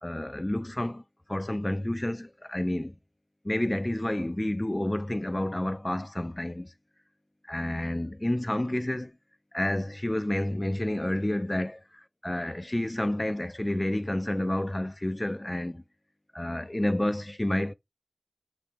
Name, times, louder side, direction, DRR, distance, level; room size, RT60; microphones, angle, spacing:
voice 1, 0.0-1.0 1.3-3.0 3.4-6.7 7.5-9.1 9.5-15.8 16.3-17.7, left 1 dB, 25° left, 0.4 m, -30 dB
3.4 x 3.1 x 4.1 m
wide cardioid pair, 45°, 0 cm